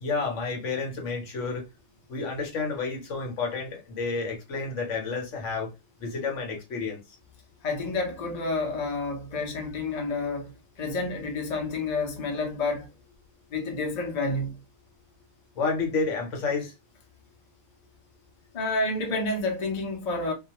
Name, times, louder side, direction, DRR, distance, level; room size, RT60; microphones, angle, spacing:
voice 1, 0.0-1.7 2.1-5.7 6.0-7.0 15.6-16.7, left 4 dB, 65° left, 1.1 m, -30 dB
voice 2, 7.6-12.9 13.5-14.6 18.5-20.3, left 3 dB, 40° left, 0.6 m, -29 dB
2.3 x 2.3 x 2.8 m
omnidirectional pair, 1.4 m